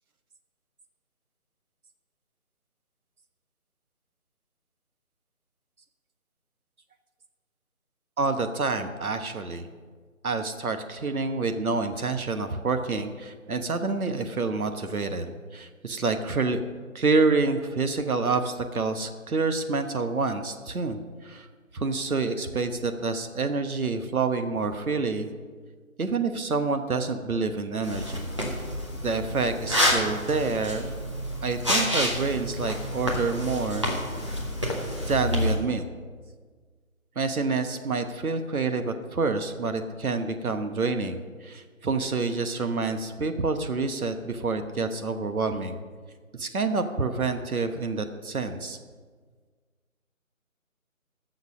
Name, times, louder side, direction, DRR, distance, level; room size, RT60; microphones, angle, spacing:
voice 1, 8.2-9.7 10.2-16.6 16.9-21.5 21.7-25.3 26.0-28.3 28.9-31.0 31.4-33.9 35.1-35.8 37.1-45.8 46.3-48.8, right 4 dB, 90° right, 7 dB, 1.2 m, -28 dB
sound 1, 27.8-35.6, equal, 20° right, 1.0 m, -28 dB
14.5 x 6.6 x 6.2 m, 1.6 s
figure-of-eight pair, 175°, 42 cm